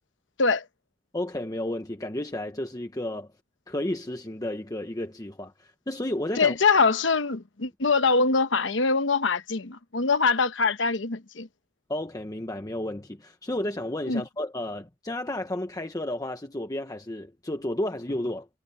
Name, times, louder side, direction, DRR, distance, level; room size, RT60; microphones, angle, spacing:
voice 1, 1.1-3.3 3.7-6.6 11.9-18.5, left 1 dB, 20° left, 1.0 m, -32 dB
voice 2, 6.4-11.5 14.1-14.2, left 4 dB, 75° left, 1.1 m, -23 dB
head